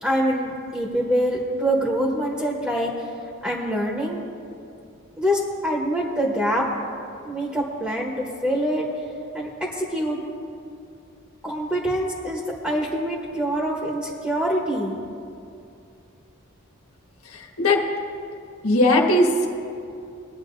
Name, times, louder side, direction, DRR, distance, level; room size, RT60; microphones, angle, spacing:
voice 1, 0.0-2.9 3.4-4.2 5.2-6.7 7.2-8.8 9.3-10.2 11.4-15.0, equal, 5° right, -2 dB, 1.2 m, -25 dB
voice 2, 17.2-17.9 18.6-19.5, left 1 dB, 85° left, 0 dB, 1.5 m, -19 dB
21.5 x 9.6 x 2.6 m, 2.5 s
head